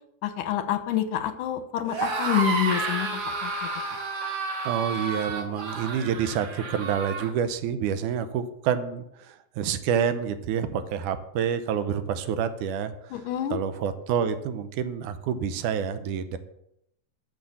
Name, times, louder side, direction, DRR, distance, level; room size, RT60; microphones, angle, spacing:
voice 1, 0.2-3.5 13.1-13.6, left 10 dB, 85° left, 10 dB, 2.5 m, -27 dB
sound 1, 1.8-7.3, right 3 dB, 40° right, 1.7 m, -31 dB
voice 2, 4.7-12.9 13.5-16.4, right 8 dB, 80° right, 10 dB, 2.3 m, -28 dB
13.0 x 6.1 x 7.0 m, 0.80 s
omnidirectional pair, 3.5 m